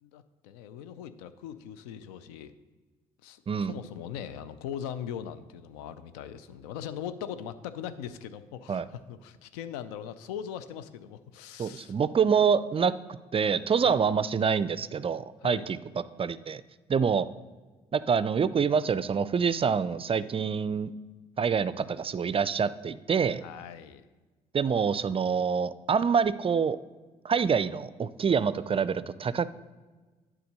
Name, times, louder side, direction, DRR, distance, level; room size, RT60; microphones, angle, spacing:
voice 1, 0.0-2.5 3.2-11.9 13.8-14.0 15.4-15.7 16.9-17.4 23.4-24.0, left 9 dB, 80° left, 13 dB, 0.5 m, -40 dB
voice 2, 11.6-12.9 13.3-15.8 16.2-16.6 16.9-17.3 17.9-20.9 21.4-23.4 24.5-26.8 27.2-29.5, right 6 dB, 30° right, 16 dB, 0.4 m, -26 dB
9.2 x 3.7 x 6.6 m, 1.3 s
hypercardioid pair, 50°, 20 cm